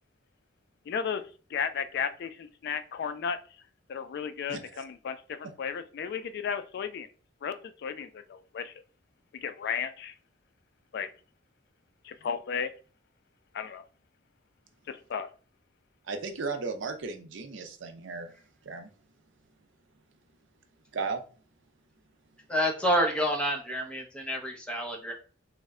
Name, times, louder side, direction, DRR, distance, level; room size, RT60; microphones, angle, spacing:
voice 1, 0.9-1.2 1.5-3.4 3.9-7.1 7.4-7.6 7.8-8.7 9.3-10.1 10.9-11.1 12.0-12.7 13.5-13.8 14.9-15.3, left 7 dB, 55° left, 10 dB, 0.3 m, -34 dB
voice 2, 4.5-4.8 16.0-18.3 18.6-18.9 20.9-21.2, right 4 dB, 75° right, 6 dB, 0.6 m, -35 dB
voice 3, 22.5-25.1, equal, 5° left, 0 dB, 0.6 m, -28 dB
3.1 x 2.1 x 3.6 m, 0.39 s
head